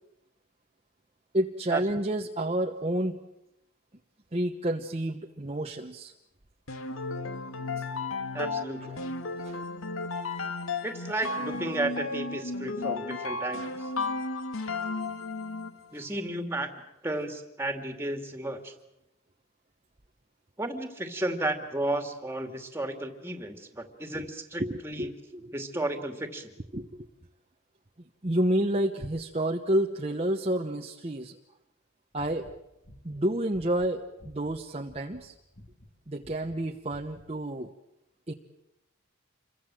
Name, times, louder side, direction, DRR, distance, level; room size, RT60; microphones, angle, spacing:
voice 1, 1.3-3.2 4.3-6.1 7.8-7.9 8.8-9.1 9.4-9.6 24.6-25.5 26.7-27.1 28.2-31.4 32.1-32.5 33.0-35.3 36.1-37.7 38.3-38.4, right 1 dB, 30° right, 3 dB, 1.1 m, -30 dB
sound 1, 6.7-15.9, left 3 dB, 80° left, 2.0 m, -34 dB
voice 2, 8.3-8.9 10.8-13.9 15.9-16.7 17.0-18.7 20.6-25.1 25.5-26.5, right 1 dB, 10° right, 6 dB, 2.5 m, -33 dB
sound 2, 32.1-34.6 34.9-35.2 35.5-35.9 36.2-36.6 36.9-37.2, equal, 45° left, 2.7 m, -52 dB
28.0 x 23.0 x 7.7 m, 0.88 s
head